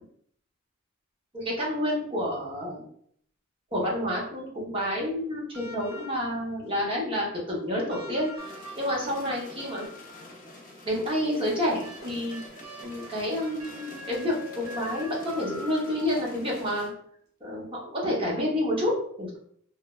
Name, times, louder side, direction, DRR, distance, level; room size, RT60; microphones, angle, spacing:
voice 1, 1.3-2.8 3.7-8.3 8.8-9.9 10.9-12.4 12.8-16.9 17.4-19.4, left 1 dB, 25° right, -4 dB, 0.8 m, -29 dB
sound 1, 5.5-6.5 7.9-10.5 11.8-16.3 17.6-17.7, left 1 dB, 80° right, 0.5 m, -44 dB
sound 2, 8.4-16.9, left 1 dB, 40° left, 0.5 m, -47 dB
3.1 x 2.1 x 2.3 m, 0.64 s
head